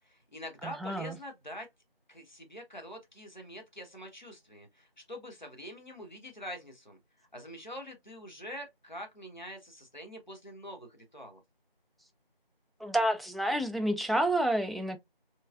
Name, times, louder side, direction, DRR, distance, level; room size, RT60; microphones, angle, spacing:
voice 1, 0.0-1.7 2.1-11.4, equal, 50° left, 1.0 m, -45 dB
voice 2, 0.8-1.2 12.8-15.0, right 1 dB, ahead, 0.3 m, -29 dB
3.3 x 3.1 x 2.4 m
figure-of-eight pair, 180°, 30 cm